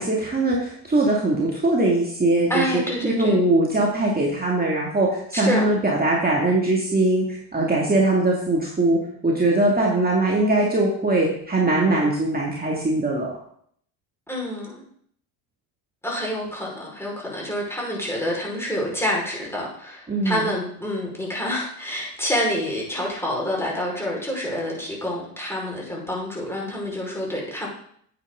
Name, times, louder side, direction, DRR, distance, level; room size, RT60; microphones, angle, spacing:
voice 1, 0.0-13.3 20.1-20.5, right 2 dB, 20° right, -3 dB, 2.4 m, -21 dB
voice 2, 2.5-3.4 5.3-5.6 14.3-14.8 16.0-27.7, equal, 5° left, -3 dB, 5.1 m, -27 dB
9.8 x 8.8 x 3.9 m, 0.65 s
supercardioid pair, 80°, 49 cm